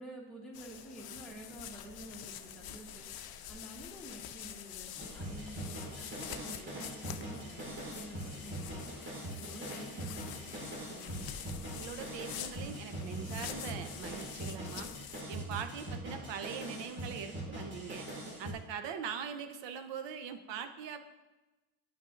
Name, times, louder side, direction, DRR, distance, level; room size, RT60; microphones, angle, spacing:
voice 1, 0.0-3.1 3.5-8.8 9.3-11.3, right 1 dB, ahead, -4 dB, 1.1 m, -49 dB
sound 1, 0.5-15.2, left 10 dB, 50° left, 0.5 m, -46 dB
sound 2, 5.0-18.5, right 1 dB, 25° right, 1.5 m, -42 dB
voice 2, 11.7-14.9 15.3-18.1 18.4-21.0, right 7 dB, 60° right, 9 dB, 0.8 m, -42 dB
9.9 x 5.4 x 2.5 m, 1.1 s
cardioid pair, 110°, 49 cm